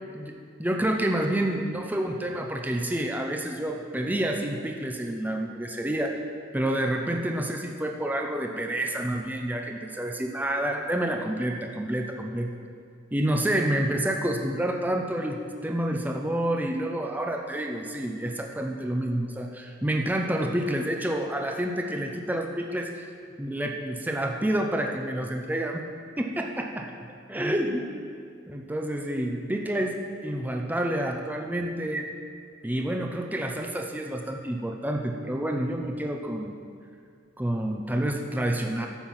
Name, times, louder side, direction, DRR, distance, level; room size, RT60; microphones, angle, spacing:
voice 1, 0.1-6.2 6.5-12.5 13.1-22.9 23.4-25.8 26.2-26.9 27.3-27.9 28.5-32.1 32.6-36.6 37.4-38.9, right 1 dB, 10° right, 2 dB, 0.6 m, -28 dB
11.5 x 7.6 x 5.6 m, 2.3 s
head